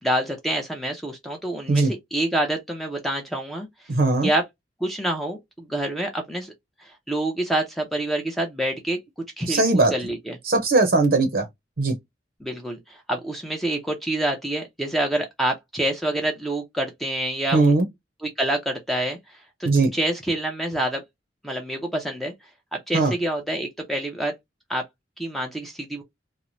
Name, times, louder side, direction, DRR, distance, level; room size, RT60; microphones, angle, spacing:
voice 1, 0.0-3.9 4.2-4.4 4.8-6.5 6.8-9.0 9.4-10.4 12.4-17.7 18.4-21.0 21.4-22.3 22.7-24.3 24.7-24.8 25.2-26.0, right 1 dB, ahead, 0.5 m, -27 dB
voice 2, 3.9-4.3 9.4-9.9 10.5-11.5 11.8-11.9 17.5-17.9 19.6-19.9 22.9-23.1, right 3 dB, 60° right, 0.7 m, -19 dB
3.0 x 2.1 x 2.5 m
head